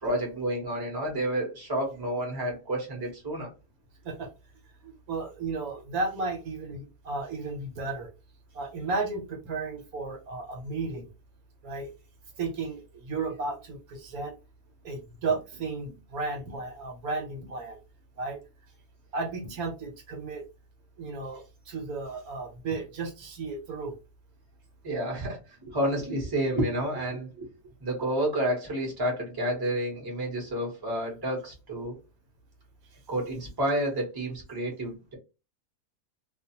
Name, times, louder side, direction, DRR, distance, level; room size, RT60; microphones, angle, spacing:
voice 1, 0.0-3.5 24.8-27.5 27.8-32.0 33.1-35.1, right 1 dB, 20° right, 0.8 m, -30 dB
voice 2, 4.8-8.1 8.5-11.1 11.6-11.9 12.4-14.3 14.8-17.8 18.2-18.4 19.1-20.4 21.0-23.9, right 3 dB, 75° right, 1.3 m, -34 dB
2.5 x 2.3 x 2.8 m
omnidirectional pair, 1.6 m